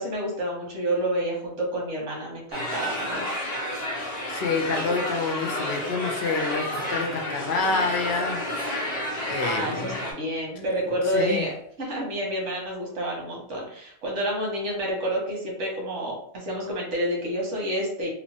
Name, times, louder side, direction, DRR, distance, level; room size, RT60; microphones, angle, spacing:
voice 1, 0.0-3.3 9.4-11.5 11.8-18.1, right 1 dB, 90° right, -2 dB, 1.3 m, -29 dB
sound 1, 2.5-10.1, left 1 dB, 40° left, 0.9 m, -31 dB
voice 2, 4.0-8.5 9.2-10.0 11.1-11.5, left 4 dB, 70° left, 2 dB, 0.8 m, -28 dB
3.0 x 2.1 x 2.7 m, 0.68 s
omnidirectional pair, 1.2 m